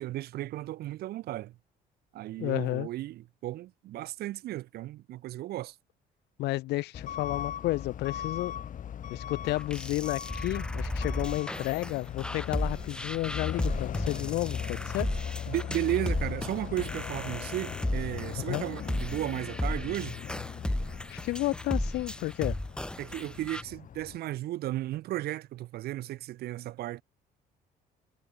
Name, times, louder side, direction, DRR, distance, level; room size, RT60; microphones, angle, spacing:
voice 1, 0.0-1.5 2.1-5.8 15.5-20.2 23.0-27.0, right 15 dB, 70° right, 0.8 m, -34 dB
voice 2, 2.4-2.9 6.4-8.5 9.1-15.1 18.5-18.6 21.1-22.6, left 18 dB, 85° left, 1.8 m, -31 dB
Truck / Alarm, 6.9-24.2, left 9 dB, 50° left, 4.3 m, -39 dB
sound 1, 9.4-23.6, left 1 dB, 5° left, 1.6 m, -35 dB
cardioid pair, 110°, 17 cm